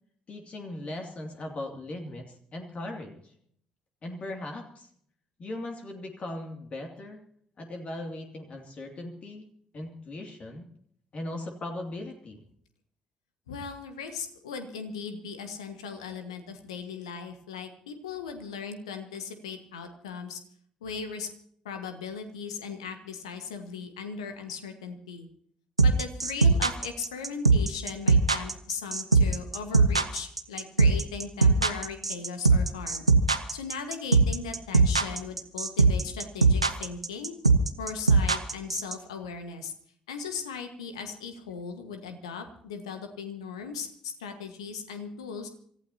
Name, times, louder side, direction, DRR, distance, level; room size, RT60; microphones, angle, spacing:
voice 1, 0.3-3.3 4.0-4.9 5.4-7.2 7.6-9.4 9.7-10.7 11.1-12.4, left 1 dB, 40° left, 2 dB, 2.5 m, -38 dB
voice 2, 13.5-20.4 20.8-21.3 21.6-25.3 25.8-33.1 33.5-37.3 37.8-39.7 40.1-45.5, left 6 dB, 75° left, 8 dB, 1.5 m, -38 dB
sound 1, 25.8-38.9, right 4 dB, 90° right, 0.6 m, -20 dB
26.5 x 15.0 x 2.8 m, 0.65 s
figure-of-eight pair, 45°, 3 cm